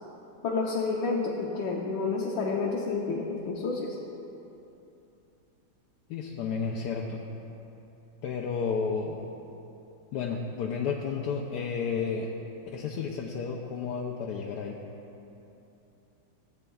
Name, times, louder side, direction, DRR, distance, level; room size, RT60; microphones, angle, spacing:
voice 1, 0.4-4.0, left 4 dB, 85° left, -3 dB, 1.6 m, -29 dB
voice 2, 6.1-7.2 8.2-9.3 10.1-12.3 12.7-14.8, left 5 dB, 70° left, -2 dB, 1.1 m, -32 dB
17.0 x 8.1 x 2.3 m, 2.8 s
omnidirectional pair, 2.0 m